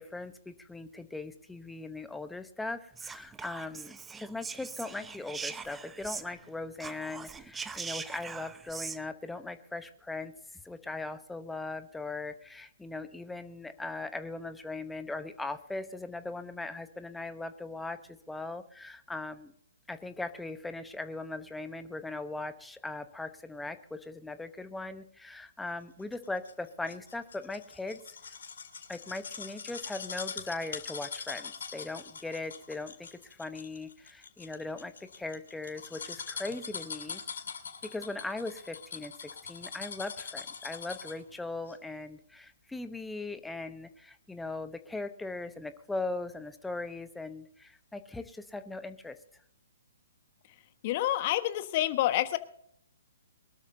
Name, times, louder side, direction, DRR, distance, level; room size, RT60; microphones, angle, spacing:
voice 1, 0.0-10.3 10.6-18.0 18.3-19.5 19.9-28.0 28.9-37.2 37.8-49.2, left 2 dB, 5° left, 9 dB, 1.0 m, -39 dB
Whispering, 2.9-6.5 6.8-9.0, right 5 dB, 10° right, 0.6 m, -41 dB
sound 1, 26.1-41.3 41.7-41.8, left 6 dB, 65° left, 2.3 m, -42 dB
voice 2, 50.8-52.4, left 14 dB, 40° left, 11 dB, 1.3 m, -28 dB
23.0 x 12.5 x 2.8 m, 0.68 s
figure-of-eight pair, 130°, 0 cm